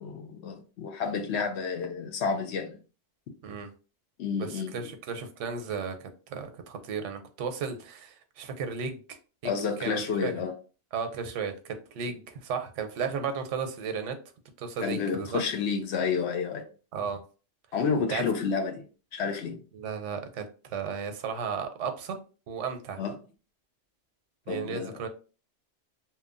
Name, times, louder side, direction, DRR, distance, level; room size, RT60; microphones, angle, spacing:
voice 1, 0.0-2.8 4.2-4.9 9.4-10.5 14.8-16.6 17.7-18.8 19.1-19.6 23.0-23.1 24.5-24.9, left 5 dB, 70° left, 0.9 m, -30 dB
voice 2, 4.4-9.5 9.8-10.3 10.9-14.1 14.6-15.4 16.9-17.2 18.1-18.3 19.7-20.4 20.7-22.1 22.5-23.0 24.5-25.1, right 6 dB, 85° right, 0.9 m, -34 dB
2.9 x 2.2 x 2.4 m
omnidirectional pair, 1.2 m